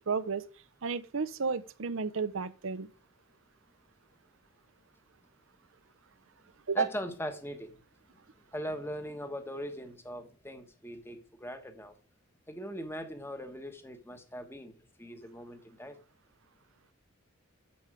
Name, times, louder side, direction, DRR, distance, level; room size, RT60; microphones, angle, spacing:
voice 1, 0.1-0.4 0.8-2.9 6.7-6.9, right 5 dB, 75° right, 0.7 m, -32 dB
voice 2, 6.7-7.8 8.5-11.9 12.5-16.0, equal, 10° left, 1.1 m, -40 dB
8.5 x 7.1 x 4.9 m
head